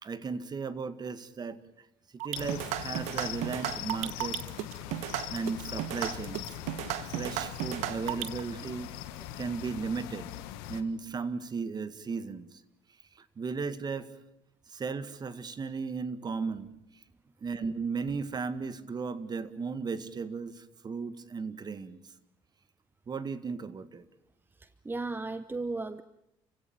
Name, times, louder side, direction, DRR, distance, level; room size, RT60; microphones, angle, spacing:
voice 1, 0.0-1.6 2.1-4.4 5.3-6.6 7.1-8.9 9.4-10.3 10.7-12.6 13.2-14.1 14.7-16.7 17.4-22.0 23.1-24.0, right 5 dB, 35° right, 14 dB, 1.9 m, -35 dB
sound 1, 2.2-8.4, right 15 dB, 75° right, 1.1 m, -34 dB
sound 2, 2.3-10.8, left 13 dB, 85° left, 1.6 m, -41 dB
voice 2, 24.6-26.0, right 3 dB, 15° right, 14 dB, 0.9 m, -35 dB
29.5 x 16.5 x 8.9 m, 0.83 s
supercardioid pair, 75°, 12 cm